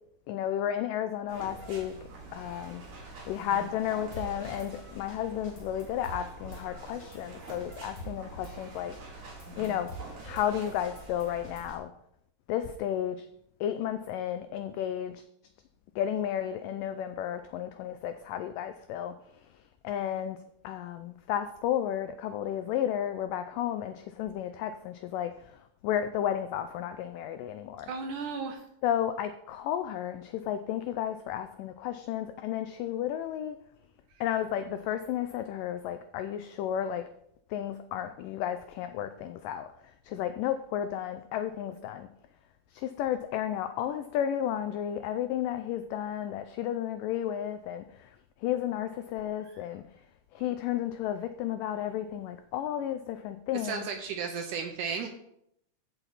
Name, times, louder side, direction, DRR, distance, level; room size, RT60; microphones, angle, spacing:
voice 1, 0.3-2.0 2.3-2.8 3.3-9.0 9.6-9.9 10.2-11.9 12.5-13.2 13.6-15.1 16.0-19.1 19.8-20.4 20.6-25.3 25.8-27.9 28.8-33.6 34.2-37.0 37.5-39.7 40.1-42.1 42.8-47.8 48.4-49.8 50.4-53.9, left 10 dB, 90° left, 10 dB, 1.9 m, -32 dB
sound 1, 1.3-11.8, right 2 dB, 50° right, 3.4 m, -46 dB
Drum kit / Snare drum, 4.1-4.7 5.1-5.2 5.4-6.6 7.0-7.2 7.5-8.5 8.9-9.0 9.3-10.5 10.8-11.8, right 2 dB, 35° left, 2.8 m, -45 dB
voice 2, 27.9-28.6 49.4-49.6 53.5-55.1, right 5 dB, 75° right, 4 dB, 2.0 m, -34 dB
14.5 x 5.8 x 4.1 m, 0.75 s
omnidirectional pair, 4.4 m